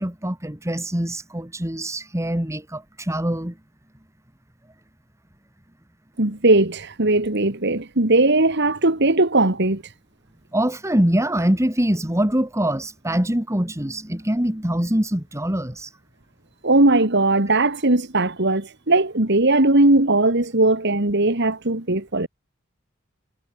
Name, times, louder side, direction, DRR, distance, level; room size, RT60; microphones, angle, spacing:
voice 1, 0.0-3.5 10.5-15.9, right 1 dB, 15° right, 2.5 m, -24 dB
voice 2, 6.2-9.8 16.6-22.3, right 2 dB, 55° right, 2.5 m, -19 dB
head